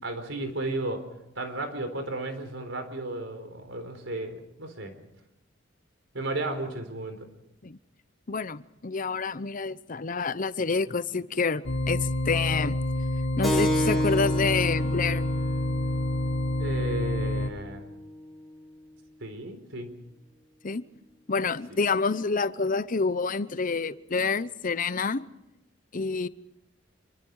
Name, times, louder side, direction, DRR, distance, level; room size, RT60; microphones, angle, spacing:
voice 1, 0.0-1.0 1.4-4.9 6.1-7.3 16.6-17.9 19.2-19.9, right 2 dB, 90° right, 4.1 m, -34 dB
voice 2, 8.3-12.8 13.4-15.3 20.6-20.8 21.3-25.3 25.9-26.3, left 4 dB, 45° left, 0.8 m, -28 dB
sound 1, 11.6-17.5, left 1 dB, 75° left, 1.4 m, -28 dB
Keyboard (musical), 13.4-18.5, equal, ahead, 4.3 m, -32 dB
27.0 x 23.5 x 4.8 m
head